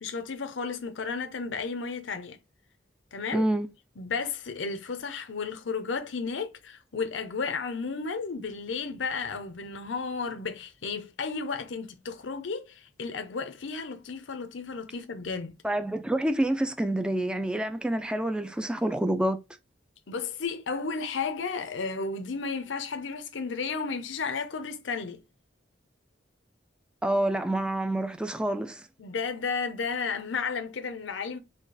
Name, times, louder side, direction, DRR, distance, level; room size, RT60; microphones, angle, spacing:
voice 1, 0.0-2.4 3.1-3.5 4.0-15.5 20.1-25.2 29.0-31.4, left 5 dB, 85° left, 0.7 m, -33 dB
voice 2, 3.3-3.7 15.6-19.4 27.0-28.9, right 1 dB, 5° right, 0.3 m, -27 dB
4.3 x 2.4 x 4.7 m
head